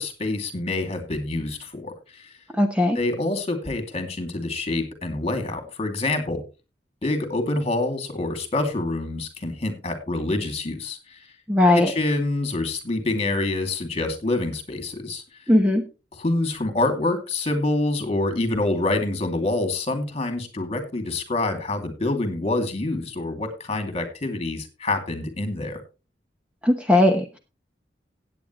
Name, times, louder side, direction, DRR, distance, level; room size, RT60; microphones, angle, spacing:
voice 1, 0.0-2.3 2.9-6.4 7.0-11.2 11.7-15.2 16.2-25.8, left 2 dB, 35° left, 7 dB, 2.5 m, -26 dB
voice 2, 2.6-3.0 11.5-11.9 15.5-15.8 26.6-27.3, left 1 dB, 5° right, 4 dB, 1.1 m, -18 dB
16.5 x 8.8 x 3.1 m, 0.30 s
head